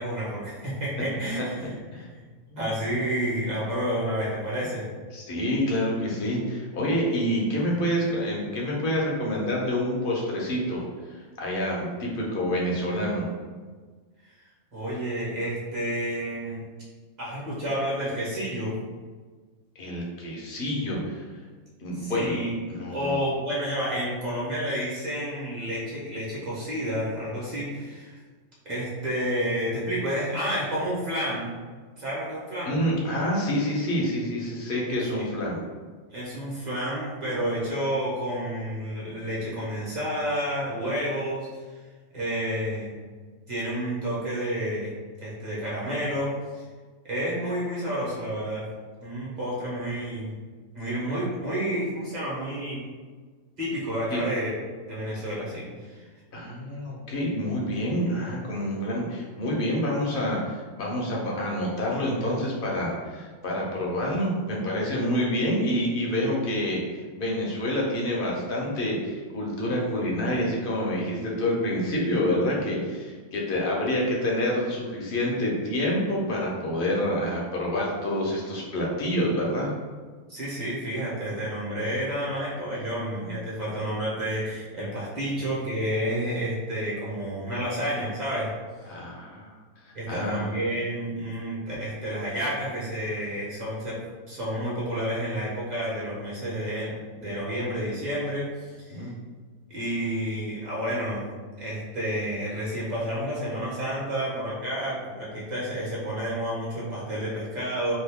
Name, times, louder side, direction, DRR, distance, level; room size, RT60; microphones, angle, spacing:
voice 1, 0.0-1.7 2.1-2.2 2.6-4.9 14.7-16.6 17.2-18.7 21.9-22.5 22.9-28.2 28.6-31.6 32.0-32.7 34.9-35.3 36.1-41.5 42.1-42.9 43.5-44.9 45.2-46.3 47.0-48.6 49.0-50.4 50.7-52.8 53.6-54.5 54.9-56.0 80.3-88.5 89.9-94.0 94.3-99.1 99.7-101.3 101.6-107.9, equal, 35° right, -7 dB, 1.1 m, -30 dB
voice 2, 5.1-13.3 19.8-21.3 21.8-22.3 22.7-23.2 32.7-35.6 54.1-54.2 56.3-79.7 88.9-89.5 90.1-90.4 98.9-99.1, equal, 50° left, -3 dB, 0.7 m, -27 dB
2.7 x 2.6 x 3.5 m, 1.5 s
omnidirectional pair, 1.5 m